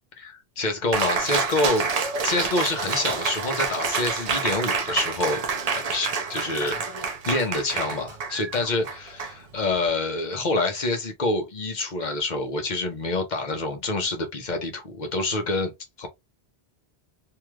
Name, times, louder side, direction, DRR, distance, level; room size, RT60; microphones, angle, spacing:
voice 1, 0.2-1.8 2.2-6.8 7.3-15.7 16.0-16.1, left 2 dB, 45° left, 0.9 m, -27 dB
Cheering, 0.9-9.9, right 5 dB, 45° right, 0.6 m, -28 dB
3.1 x 2.7 x 2.3 m
omnidirectional pair, 1.1 m